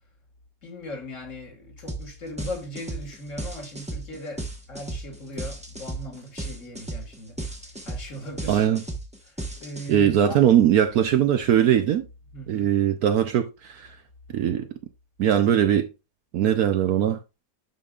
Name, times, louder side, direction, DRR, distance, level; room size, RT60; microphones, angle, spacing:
voice 1, 0.6-8.7 9.3-10.6 12.3-12.7, left 1 dB, 45° left, 2.0 m, -39 dB
sound 1, 1.9-2.1 2.4-10.2, right 2 dB, 5° right, 0.9 m, -34 dB
voice 2, 8.5-8.8 9.9-12.1 12.5-13.9 14.3-14.7 15.2-15.9 16.3-17.2, right 10 dB, 65° right, 1.0 m, -20 dB
11.5 x 5.2 x 2.4 m
omnidirectional pair, 1.9 m